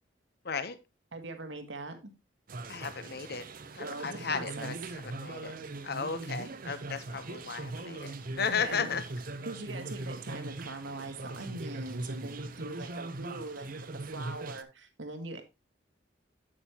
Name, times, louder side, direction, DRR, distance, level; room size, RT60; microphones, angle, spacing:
voice 1, 0.4-0.8 2.7-3.5 3.7-5.5 5.8-8.1 8.4-9.0, left 6 dB, 55° left, 12 dB, 0.9 m, -35 dB
voice 2, 1.1-2.1 3.8-4.7 8.5-8.9 9.4-15.4, right 2 dB, 80° right, 6 dB, 1.9 m, -41 dB
sound 1, 2.5-14.6, right 2 dB, 50° right, 0.7 m, -40 dB
8.8 x 8.5 x 2.9 m, 0.24 s
head